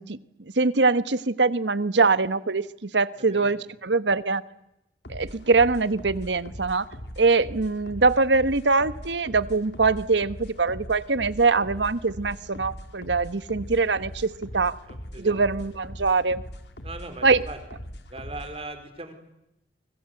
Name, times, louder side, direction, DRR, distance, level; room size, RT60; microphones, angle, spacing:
voice 1, 0.0-3.6 3.8-4.4 5.1-6.9 7.2-14.8 15.2-16.4 17.2-17.4, right 3 dB, 85° right, 15 dB, 1.2 m, -23 dB
voice 2, 3.1-3.5 14.5-15.4 16.8-17.6 18.1-19.1, right 2 dB, 35° right, 8 dB, 4.3 m, -40 dB
sound 1, 5.0-18.6, equal, 75° left, 2.9 m, -41 dB
29.0 x 25.0 x 7.9 m, 0.85 s
head